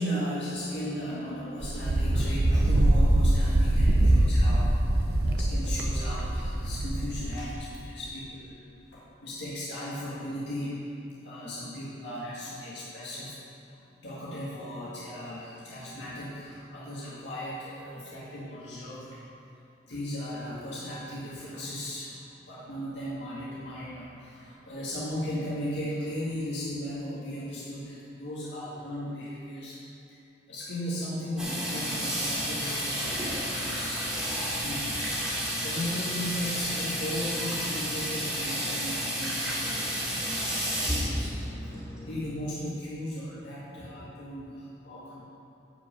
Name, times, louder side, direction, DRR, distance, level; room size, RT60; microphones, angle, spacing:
voice 1, 0.0-8.6 8.9-10.7 11.2-13.4 14.0-19.2 19.8-22.2 22.5-29.8 30.5-34.9 35.6-45.2, equal, 75° left, -8 dB, 1.8 m, -36 dB
Wind, 1.6-7.5, right 1 dB, 60° right, 0.8 m, -23 dB
Water tap faucet / Sink (filling or washing), 31.4-42.3, equal, 5° right, 2.6 m, -31 dB
10.5 x 5.2 x 7.4 m, 2.7 s
head